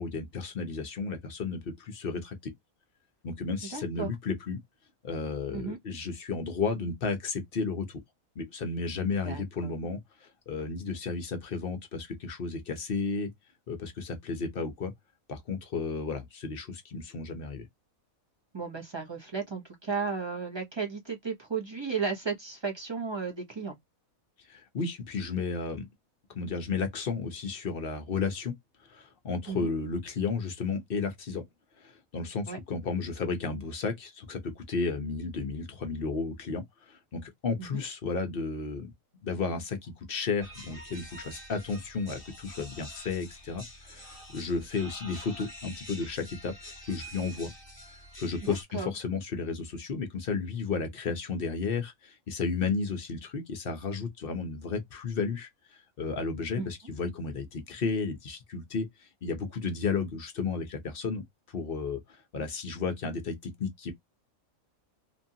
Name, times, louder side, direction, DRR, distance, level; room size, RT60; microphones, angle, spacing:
voice 1, 0.0-2.5 3.2-4.6 5.0-7.9 8.4-13.3 13.7-14.9 15.3-17.7 24.5-25.9 26.3-28.6 28.9-31.4 31.8-38.9 39.2-47.5 48.2-55.5 56.0-61.2 61.5-62.0 62.3-63.9, left 4 dB, 50° left, 0.8 m, -33 dB
voice 2, 3.7-4.1 5.5-5.8 9.2-9.8 18.5-23.8 29.5-29.7 32.5-32.6 37.6-37.8 48.4-48.9 56.6-56.7, right 5 dB, 25° right, 0.7 m, -34 dB
sound 1, 40.4-48.6, equal, 20° left, 1.5 m, -47 dB
3.0 x 2.4 x 2.7 m
omnidirectional pair, 1.5 m